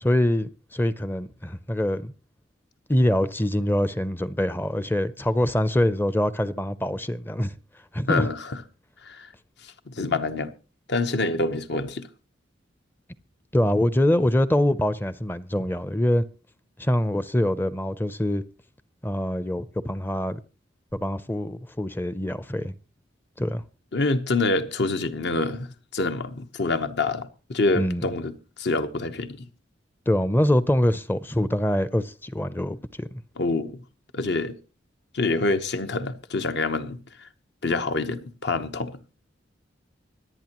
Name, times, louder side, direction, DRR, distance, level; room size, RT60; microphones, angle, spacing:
voice 1, 0.0-2.1 2.9-7.6 7.9-8.3 13.5-16.2 16.8-18.4 19.0-20.4 20.9-22.7 23.4-23.6 27.7-28.0 30.1-33.1, left 1 dB, 10° left, 0.5 m, -24 dB
voice 2, 8.1-8.6 9.0-9.3 9.6-10.5 10.9-12.1 23.9-28.3 28.6-29.5 33.4-33.8 34.1-34.6 35.1-37.3 37.6-38.9, left 3 dB, 60° left, 1.0 m, -26 dB
25.0 x 8.9 x 3.0 m
head